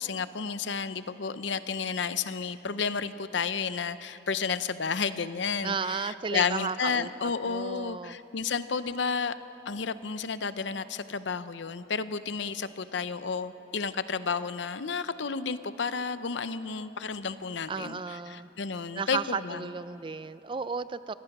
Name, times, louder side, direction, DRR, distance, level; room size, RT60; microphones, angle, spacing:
voice 1, 0.0-9.3 9.7-19.7, left 5 dB, 70° left, 13 dB, 0.7 m, -32 dB
voice 2, 5.6-8.2 17.7-18.5 18.9-21.1, right 5 dB, 25° right, 14 dB, 0.3 m, -34 dB
26.0 x 18.0 x 6.0 m, 3.0 s
head